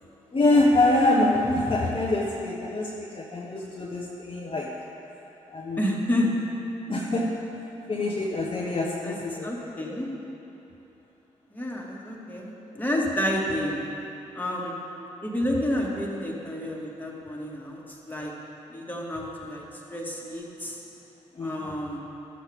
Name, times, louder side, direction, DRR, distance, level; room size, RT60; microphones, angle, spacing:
voice 1, 0.3-4.7 5.5-5.8 6.9-9.5 21.3-21.7, left 2 dB, 35° left, -2 dB, 1.0 m, -25 dB
voice 2, 5.8-6.3 9.0-9.2 9.4-10.1 11.5-13.8 14.3-14.8 15.2-18.3 18.7-19.6 19.9-20.8 21.4-22.0, left 1 dB, 10° left, -3 dB, 2.1 m, -29 dB
12.5 x 7.3 x 3.6 m, 3.0 s
hypercardioid pair, 40°, 15 cm